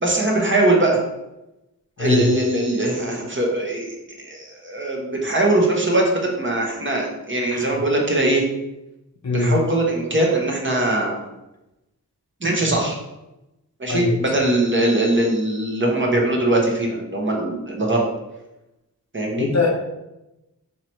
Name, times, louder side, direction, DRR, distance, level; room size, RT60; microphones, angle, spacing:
voice 1, 0.0-1.0 2.0-8.4 9.3-11.2 12.4-13.0 13.8-18.0 19.1-19.5, right 1 dB, 30° right, -1 dB, 1.1 m, -21 dB
voice 2, 2.0-2.3 7.5-7.8 9.2-9.5 13.9-14.1 19.3-19.7, left 3 dB, 45° left, 0 dB, 0.8 m, -21 dB
3.0 x 2.9 x 4.5 m, 0.95 s
cardioid pair, 50°, 38 cm